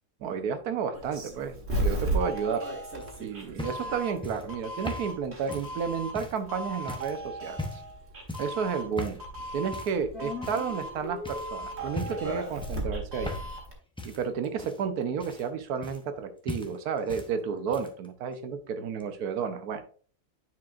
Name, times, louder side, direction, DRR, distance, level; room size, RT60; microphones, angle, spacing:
voice 1, 0.2-2.7 3.2-7.8 8.4-9.2 9.5-13.3 14.0-19.8, right 6 dB, 75° right, 9 dB, 1.3 m, -32 dB
Doorbell, 0.9-13.7, right 1 dB, 45° right, 1.8 m, -35 dB
sound 1, 3.0-6.4 6.9-7.2 7.5-7.9 8.3-8.6 9.0-9.3 9.7-10.0 10.4-10.9 11.2-11.5 11.9-12.3 12.6-13.7 14.0-16.2 16.5-17.3 17.6-18.1 19.0-19.1, left 2 dB, 10° left, 0.3 m, -39 dB
sound 2, 10.1-12.1, left 2 dB, 75° left, 1.9 m, -41 dB
9.4 x 4.8 x 2.5 m, 0.43 s
omnidirectional pair, 1.6 m